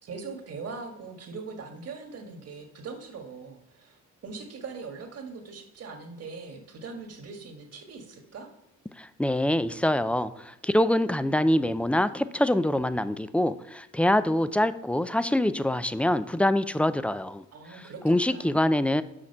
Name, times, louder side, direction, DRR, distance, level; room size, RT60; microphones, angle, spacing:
voice 1, 0.0-8.5 17.5-18.0 18.3-18.5, right 4 dB, 55° right, 4 dB, 1.6 m, -41 dB
voice 2, 9.0-17.4 17.7-19.0, left 1 dB, 5° left, 14 dB, 0.3 m, -25 dB
6.4 x 5.9 x 5.5 m, 0.83 s
cardioid pair, 90°, 30 cm